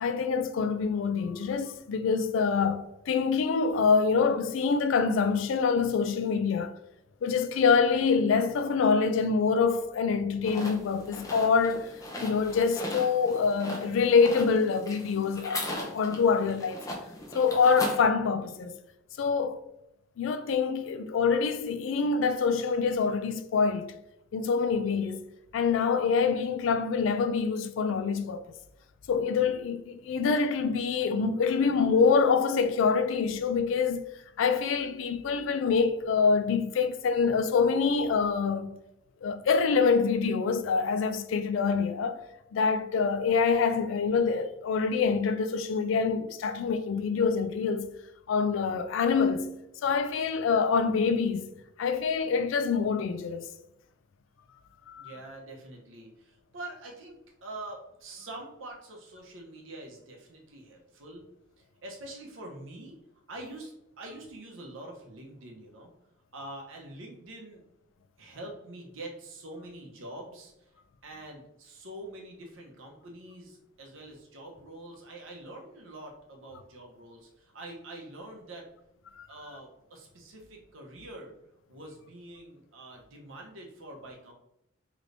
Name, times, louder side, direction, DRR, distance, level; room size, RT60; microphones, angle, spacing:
voice 1, 0.0-6.7 7.2-11.9 12.2-16.8 17.3-18.8 19.2-19.6 20.2-23.9 24.3-25.2 25.5-28.4 29.1-34.0 34.4-38.8 39.2-42.2 42.5-47.9 48.3-49.5 49.8-51.5 51.8-53.4 54.9-55.1 79.2-79.3, left 5 dB, 80° left, 0.3 m, -25 dB
sound 1, 10.4-18.0, left 1 dB, 15° left, 0.5 m, -38 dB
voice 2, 55.0-61.2 61.8-63.0 63.3-65.9 66.3-67.6 68.2-70.7 71.0-78.6 79.3-81.3 81.7-84.3, right 1 dB, 85° right, 0.8 m, -45 dB
3.2 x 3.0 x 2.6 m
head